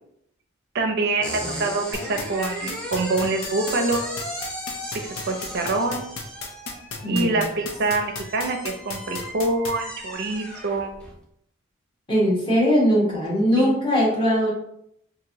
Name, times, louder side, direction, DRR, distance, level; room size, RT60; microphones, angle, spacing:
voice 1, 0.7-4.0 5.3-6.1 7.1-10.9 13.6-13.8, right 2 dB, 55° right, 4 dB, 0.5 m, -25 dB
sound 1, 1.2-11.2, equal, 5° left, 0.5 m, -36 dB
sound 2, 1.9-9.7, left 4 dB, 90° left, 0.5 m, -33 dB
voice 2, 7.0-7.4 12.1-14.5, equal, 25° left, -6 dB, 1.0 m, -20 dB
3.0 x 2.5 x 2.7 m, 0.75 s
head